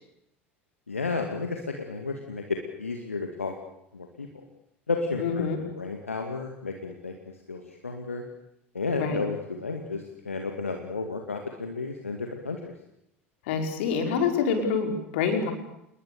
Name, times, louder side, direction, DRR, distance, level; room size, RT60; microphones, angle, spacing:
voice 1, 0.9-3.6 3.9-4.3 4.9-8.2 8.7-12.7, left 4 dB, 80° left, 4 dB, 2.2 m, -32 dB
voice 2, 5.2-5.6 9.0-9.2 13.5-15.5, left 5 dB, 60° left, 4 dB, 5.3 m, -26 dB
29.0 x 21.0 x 7.0 m, 0.79 s
figure-of-eight pair, 70°, 7 cm